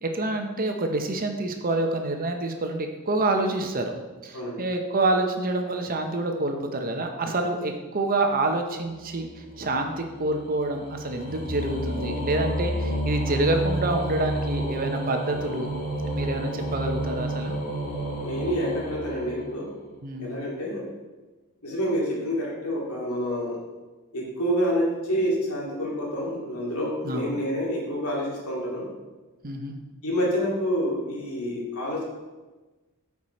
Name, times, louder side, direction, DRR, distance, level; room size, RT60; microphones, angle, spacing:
voice 1, 0.0-3.9 4.2-9.3 9.6-15.7 16.0-17.6 20.0-20.3 27.0-27.4 29.4-29.8, right 2 dB, 40° right, 4 dB, 0.8 m, -27 dB
sound 1, 9.0-19.9, right 1 dB, 45° left, 1.6 m, -31 dB
voice 2, 18.2-19.7 20.2-20.9 21.6-23.6 24.1-28.9 30.0-32.0, equal, 80° left, -3 dB, 2.3 m, -28 dB
8.7 x 4.8 x 4.3 m, 1.2 s
head